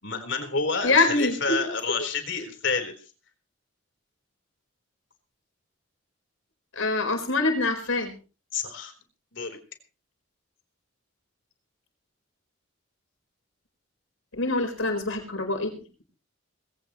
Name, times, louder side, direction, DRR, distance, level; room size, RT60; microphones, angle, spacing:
voice 1, 0.0-2.9 8.5-8.9 9.3-9.6, left 4 dB, 60° left, 6 dB, 4.1 m, -29 dB
voice 2, 0.8-1.6 6.8-8.1 14.3-15.7, left 3 dB, 80° left, 5 dB, 4.5 m, -24 dB
20.5 x 17.0 x 3.1 m, 0.35 s
head